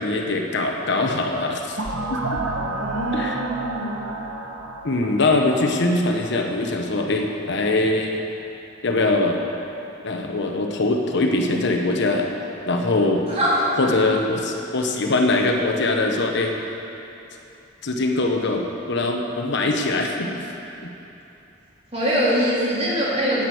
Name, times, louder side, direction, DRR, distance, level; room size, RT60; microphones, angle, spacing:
voice 1, 0.0-1.8 2.1-2.2 3.1-3.4 4.8-8.1 8.8-9.4 10.0-12.3 12.7-13.3 13.8-16.5 17.8-20.4 20.8-20.9, left 2 dB, 60° left, 2 dB, 1.1 m, -22 dB
sound 1, 1.8-6.5, right 2 dB, 85° right, 1.3 m, -30 dB
voice 2, 2.6-4.0 13.3-13.8 21.9-23.4, equal, 30° right, -8 dB, 3.6 m, -23 dB
11.0 x 8.8 x 7.8 m, 2.9 s
head